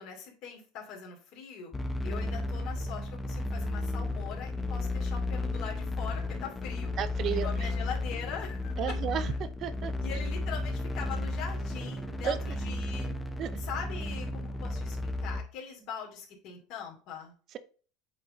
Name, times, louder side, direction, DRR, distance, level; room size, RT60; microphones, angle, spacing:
voice 1, 0.0-1.7 2.0-6.9 7.3-8.8 10.0-13.1 13.6-17.3, left 7 dB, 50° left, 0 dB, 2.6 m, -42 dB
sound 1, 1.7-15.4, left 2 dB, 10° left, 0.8 m, -33 dB
voice 2, 7.0-7.7 8.8-9.9 12.2-12.4 13.4-13.6 17.5-17.6, right 9 dB, 40° right, 13 dB, 0.6 m, -33 dB
8.3 x 3.6 x 3.8 m, 0.40 s
supercardioid pair, 145°, 0 cm